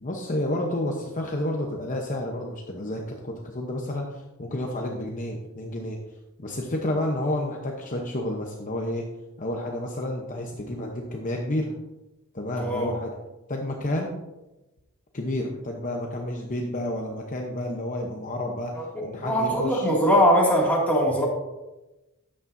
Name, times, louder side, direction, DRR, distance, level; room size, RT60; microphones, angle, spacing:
voice 1, 0.0-6.0 6.4-9.0 9.4-11.7 12.3-13.1 13.5-14.2 15.1-19.9, left 1 dB, 35° left, 0 dB, 0.9 m, -30 dB
voice 2, 12.6-12.9 18.7-21.3, equal, 5° left, -3 dB, 2.3 m, -22 dB
13.0 x 8.8 x 2.7 m, 1.0 s
head